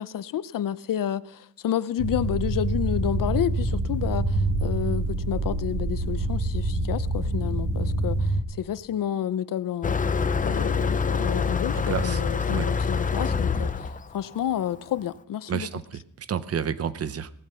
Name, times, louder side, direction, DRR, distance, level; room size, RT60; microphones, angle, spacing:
voice 1, 0.0-9.9 10.4-15.7, left 10 dB, 85° left, 0.7 m, -30 dB
sound 1, 2.0-8.4, right 2 dB, 70° right, 1.8 m, -26 dB
Motor vehicle (road), 9.8-15.0, left 5 dB, 25° left, 0.6 m, -26 dB
voice 2, 11.7-12.2 12.5-12.7 15.5-17.3, right 8 dB, 50° right, 0.7 m, -30 dB
18.5 x 13.0 x 5.6 m
wide cardioid pair, 180°, 32 cm